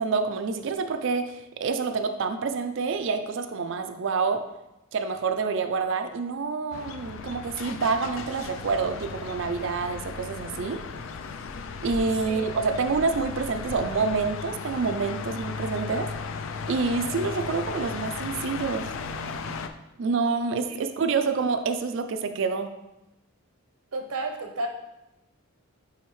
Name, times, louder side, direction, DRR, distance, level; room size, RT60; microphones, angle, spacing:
voice 1, 0.0-4.4 4.9-10.8 11.8-16.1 16.7-18.9 20.0-22.7, right 4 dB, 55° right, 7 dB, 0.4 m, -27 dB
sound 1, 6.7-19.7, left 5 dB, 60° left, 0.4 m, -36 dB
voice 2, 23.9-24.7, right 2 dB, 80° right, 4 dB, 0.8 m, -31 dB
8.6 x 3.4 x 3.2 m, 0.93 s
head